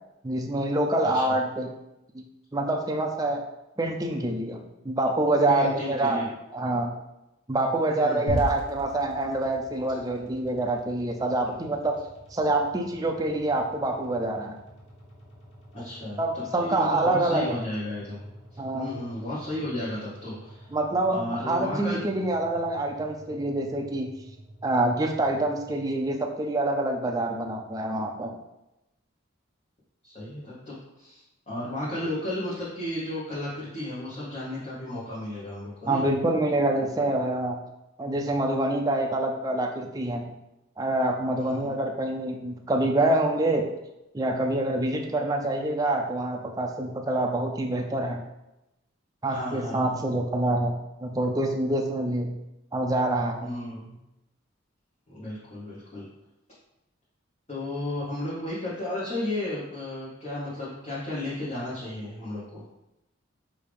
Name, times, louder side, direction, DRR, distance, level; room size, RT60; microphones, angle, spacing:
voice 1, 0.2-1.7 2.1-2.2 2.5-3.4 3.8-6.2 6.5-6.9 7.5-12.0 12.3-14.6 16.2-17.6 18.6-18.9 20.7-24.1 24.6-28.3 35.9-37.6 38.0-40.3 40.8-43.7 44.1-48.2 49.2-52.3 52.7-53.5, right 2 dB, 20° right, 2 dB, 0.4 m, -26 dB
voice 2, 1.0-1.3 5.5-6.3 8.0-8.4 15.7-18.2 18.7-20.7 21.1-22.0 30.0-36.0 41.3-41.8 49.3-50.0 53.4-53.9 55.1-56.1 57.5-62.6, left 1 dB, 35° left, -9 dB, 1.0 m, -34 dB
sound 1, 8.3-26.5, equal, 75° left, 1.2 m, -43 dB
5.0 x 2.7 x 3.4 m, 0.92 s
head